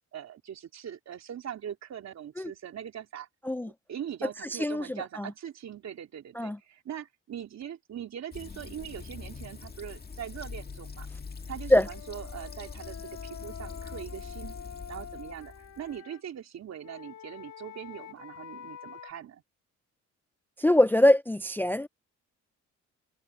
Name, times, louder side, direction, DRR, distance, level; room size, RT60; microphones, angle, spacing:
voice 1, 0.1-3.3 3.9-11.1 11.5-14.5 14.9-19.4, right 9 dB, 60° right, 3.4 m, -41 dB
voice 2, 4.2-5.3 6.3-6.6 11.7-11.9 20.6-21.9, left 1 dB, 5° left, 0.5 m, -24 dB
Fill (with liquid), 8.3-16.0, left 5 dB, 30° left, 2.0 m, -43 dB
Wind instrument woodwind instrument, 11.8-16.2 16.8-19.1, left 8 dB, 60° left, 1.9 m, -46 dB
cardioid pair, 90°, 30 cm